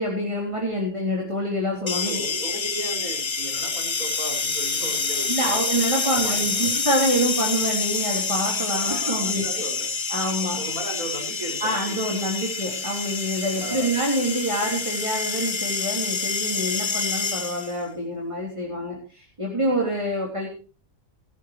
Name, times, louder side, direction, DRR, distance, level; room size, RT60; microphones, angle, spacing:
voice 1, 0.0-2.2 5.3-9.7 10.1-10.7 11.6-20.5, equal, 20° right, -2 dB, 3.6 m, -26 dB
voice 2, 1.8-5.7 6.0-6.7 8.8-9.9 10.6-12.0 13.6-14.0, right 2 dB, 80° right, 1 dB, 6.7 m, -36 dB
sound 1, 1.9-17.8, left 4 dB, 30° left, 0.6 m, -27 dB
19.5 x 14.0 x 3.3 m, 0.38 s
omnidirectional pair, 1.5 m